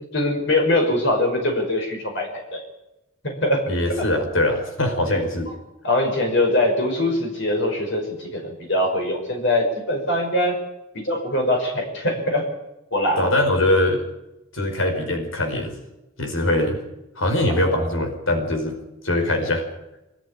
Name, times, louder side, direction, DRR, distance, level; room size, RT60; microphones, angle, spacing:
voice 1, 0.1-2.6 3.2-3.6 4.0-4.1 5.1-5.2 5.5-5.6 5.8-8.4 8.7-10.5 10.9-12.4 12.9-13.3 17.5-17.9, left 1 dB, 65° left, 2 dB, 5.8 m, -22 dB
voice 2, 3.7-5.5 13.2-14.0 14.5-15.7 16.2-16.8 17.2-18.8 19.0-19.7, left 1 dB, 90° left, 4 dB, 5.1 m, -22 dB
25.0 x 14.0 x 10.0 m, 0.94 s
head